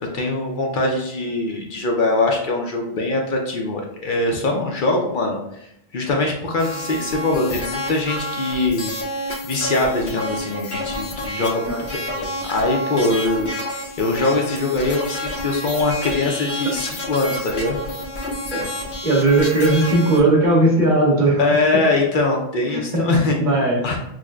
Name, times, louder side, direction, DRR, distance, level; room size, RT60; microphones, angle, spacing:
voice 1, 0.0-5.4 5.9-8.9 9.4-17.8 21.4-23.4 23.8-24.0, left 2 dB, 60° left, 1 dB, 0.7 m, -22 dB
sound 1, 6.6-20.2, left 1 dB, 85° left, 1.0 m, -29 dB
voice 2, 19.0-21.5 21.7-21.8 22.7-23.1 23.4-23.9, right 2 dB, 50° right, -4 dB, 1.1 m, -17 dB
6.0 x 2.1 x 2.3 m, 0.80 s
omnidirectional pair, 1.0 m